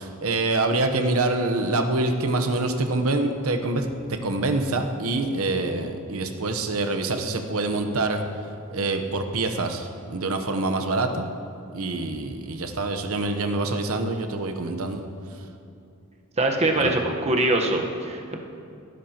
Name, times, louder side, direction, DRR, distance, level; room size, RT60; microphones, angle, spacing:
voice 1, 0.0-8.2 8.7-11.3 11.7-15.0 16.8-16.9, right 2 dB, 80° right, 5 dB, 0.9 m, -25 dB
voice 2, 16.4-18.4, right 2 dB, 30° right, 2 dB, 1.1 m, -23 dB
18.0 x 10.5 x 2.9 m, 2.5 s
head